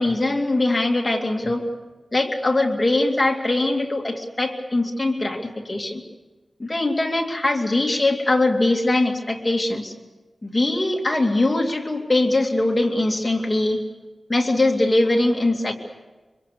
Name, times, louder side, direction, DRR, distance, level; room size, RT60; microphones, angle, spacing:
voice 1, 0.0-1.7 2.1-6.0 6.6-9.9 10.4-13.8 14.3-15.7, left 2 dB, 25° left, 2 dB, 2.5 m, -21 dB
25.5 x 24.5 x 6.9 m, 1.2 s
wide cardioid pair, 100°, 0 cm